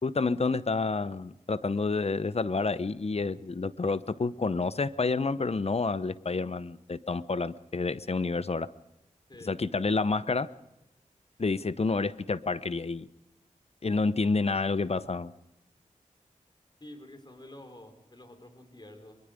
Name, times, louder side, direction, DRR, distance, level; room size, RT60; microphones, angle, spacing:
voice 1, 0.0-8.7 9.5-10.5 11.4-13.1 13.8-15.3, left 3 dB, 50° left, 16 dB, 0.8 m, -29 dB
voice 2, 16.8-19.2, left 1 dB, 35° left, 6 dB, 4.2 m, -49 dB
23.0 x 22.5 x 5.1 m, 0.91 s
cardioid pair, 50°, 14 cm